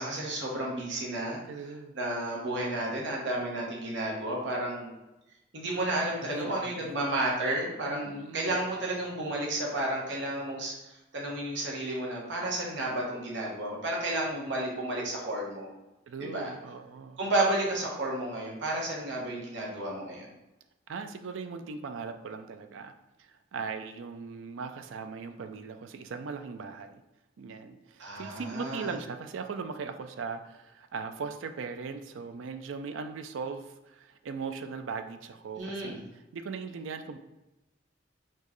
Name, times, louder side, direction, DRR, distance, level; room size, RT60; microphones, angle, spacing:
voice 1, 0.0-1.4 1.9-4.9 5.5-15.7 16.2-16.5 17.2-20.3 28.0-28.9 35.5-36.0, right 1 dB, 70° right, -3 dB, 1.0 m, -32 dB
voice 2, 1.5-2.0 6.2-6.9 7.8-8.6 16.1-17.2 20.9-22.9 23.2-27.0 27.4-37.2, right 5 dB, 85° right, 8 dB, 0.4 m, -39 dB
4.3 x 3.0 x 3.0 m, 0.99 s
head